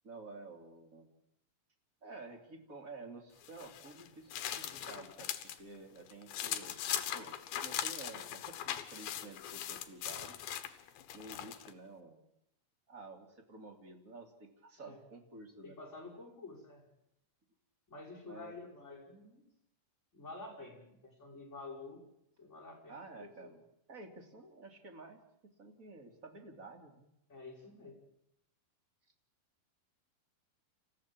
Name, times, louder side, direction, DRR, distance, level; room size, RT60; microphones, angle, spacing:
voice 1, 0.0-1.1 2.0-6.8 7.1-10.4 11.1-12.2 12.9-15.8 18.2-18.6 22.9-23.6 23.9-25.2 25.6-27.1, right 3 dB, 20° right, 4 dB, 2.8 m, -51 dB
sound 1, 3.4-5.6 6.0-11.7, left 11 dB, 65° left, 3.0 m, -40 dB
voice 2, 15.6-16.8 17.9-19.4 20.1-22.0 22.4-23.5 27.3-28.0, left 3 dB, 15° left, -2 dB, 5.9 m, -49 dB
28.5 x 15.5 x 8.8 m, 0.79 s
omnidirectional pair, 5.0 m